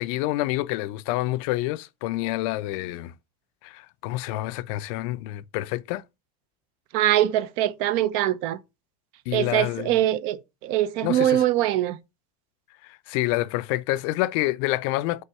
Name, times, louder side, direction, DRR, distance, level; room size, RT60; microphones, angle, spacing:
voice 1, 0.0-3.1 3.6-6.0 9.3-10.0 11.0-11.4 12.9-15.2, left 17 dB, 65° left, 0.5 m, -28 dB
voice 2, 6.9-8.6 9.3-12.0, right 13 dB, 65° right, 0.7 m, -23 dB
5.4 x 3.8 x 4.7 m
supercardioid pair, 120°, 19 cm